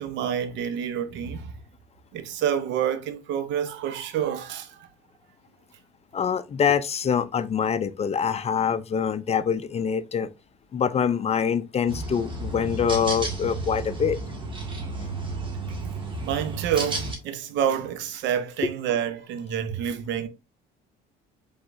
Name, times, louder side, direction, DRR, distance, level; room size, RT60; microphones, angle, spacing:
voice 1, 0.0-1.5 2.1-4.9 15.7-15.9 16.2-20.3, right 9 dB, 70° right, 0.9 m, -28 dB
voice 2, 6.1-10.3 10.7-14.2 18.6-18.7, left 7 dB, 35° left, 0.5 m, -25 dB
sound 1, 11.9-17.2, right 2 dB, 25° right, 1.6 m, -32 dB
4.7 x 3.6 x 2.5 m
supercardioid pair, 80°, 19 cm